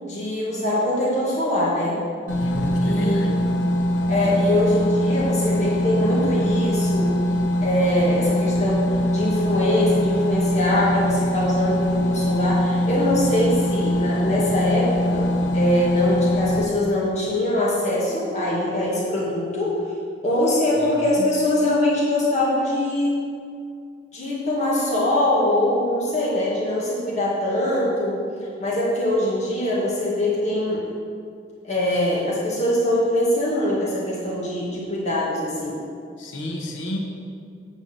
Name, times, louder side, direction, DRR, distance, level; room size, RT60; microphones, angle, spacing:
voice 1, 0.0-2.0 2.8-3.6 4.1-7.1 7.6-8.8 9.1-19.8 20.2-23.2 24.1-28.2 28.6-30.9 31.6-35.8, left 1 dB, 40° left, -7 dB, 2.1 m, -23 dB
voice 2, 2.3-3.4 20.8-21.3 36.2-37.0, left 1 dB, 85° left, 0 dB, 1.2 m, -31 dB
sound 1, 2.3-16.6, equal, 70° left, 0.9 m, -22 dB
9.0 x 4.7 x 6.8 m, 2.3 s
head